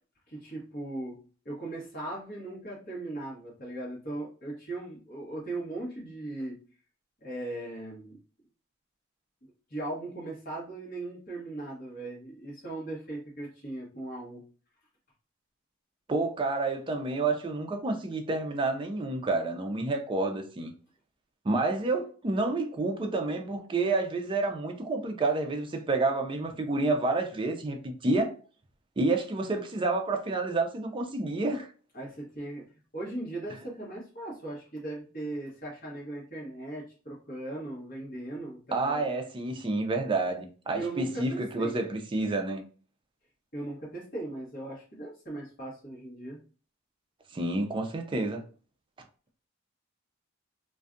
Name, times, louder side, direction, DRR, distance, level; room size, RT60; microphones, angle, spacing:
voice 1, 0.3-1.2 1.4-6.6 7.2-8.2 9.7-14.4 31.9-32.6 32.9-39.0 40.7-41.7 43.5-46.4, right 2 dB, 45° left, 1.1 m, -38 dB
voice 2, 16.1-20.7 21.4-28.4 29.0-31.7 38.7-42.6 47.3-48.4, right 2 dB, 25° right, 0.4 m, -29 dB
2.5 x 2.3 x 2.4 m
head